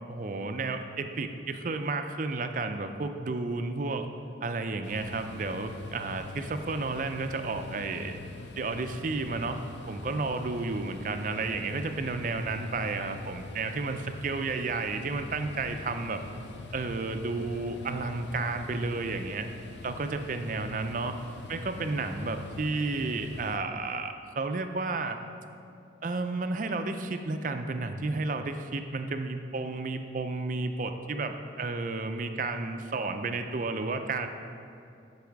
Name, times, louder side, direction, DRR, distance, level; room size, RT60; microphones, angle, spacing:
voice 1, 0.1-4.1 4.4-8.2 8.6-9.6 9.9-16.2 16.7-19.5 19.8-21.1 21.5-25.2 26.0-34.3, right 3 dB, 45° right, 7 dB, 0.5 m, -32 dB
sound 1, 4.8-23.6, left 3 dB, 70° left, 0.5 m, -44 dB
12.0 x 4.8 x 4.7 m, 2.5 s
head